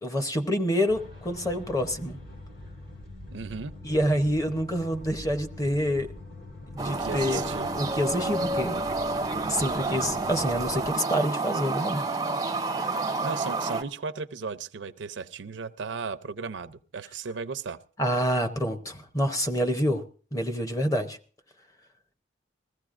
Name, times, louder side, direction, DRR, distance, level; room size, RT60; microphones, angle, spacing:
voice 1, 0.0-2.2 3.8-6.1 6.7-7.4 7.7-8.8 9.5-12.1 12.9-13.1 18.0-20.0 20.3-21.2, equal, 20° left, 7 dB, 0.8 m, -27 dB
sound 1, 0.9-10.9, left 2 dB, 50° left, 2.3 m, -44 dB
voice 2, 3.3-3.7 6.9-7.7 13.2-17.8, right 5 dB, 85° right, 11 dB, 0.5 m, -36 dB
sound 2, 6.8-13.8, right 3 dB, 20° right, 0.5 m, -29 dB
21.0 x 15.0 x 2.5 m, 0.41 s
head